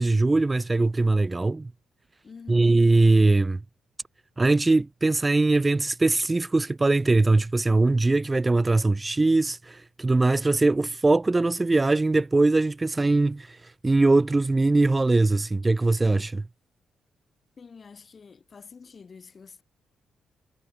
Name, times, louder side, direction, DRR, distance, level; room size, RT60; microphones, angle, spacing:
voice 1, 0.0-1.7 2.5-3.6 4.4-13.5 13.8-16.4, right 2 dB, 25° right, 0.5 m, -21 dB
voice 2, 2.2-2.8 17.6-19.6, left 5 dB, 45° left, 2.3 m, -47 dB
supercardioid pair, 55°, 0 cm